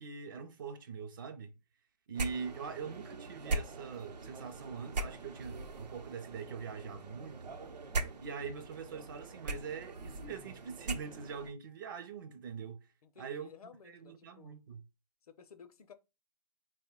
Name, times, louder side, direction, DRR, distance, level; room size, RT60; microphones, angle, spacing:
voice 1, 0.0-1.6 2.1-7.6 8.2-12.9 13.2-13.5 13.8-14.8, right 6 dB, 30° right, 0.5 m, -43 dB
sound 1, 2.1-11.5, right 2 dB, 75° right, 0.8 m, -41 dB
voice 2, 13.0-14.6 15.2-15.9, left 6 dB, 60° left, 0.6 m, -55 dB
4.0 x 2.2 x 3.7 m
hypercardioid pair, 145°, 21 cm